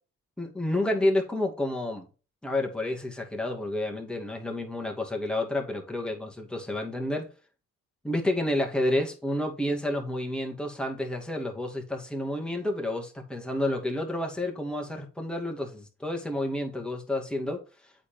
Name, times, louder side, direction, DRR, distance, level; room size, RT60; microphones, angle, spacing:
voice 1, 0.4-2.1 2.4-7.3 8.0-17.6, left 1 dB, 5° left, 2.4 m, -30 dB
8.4 x 4.2 x 5.1 m
cardioid pair, 90°, 30 cm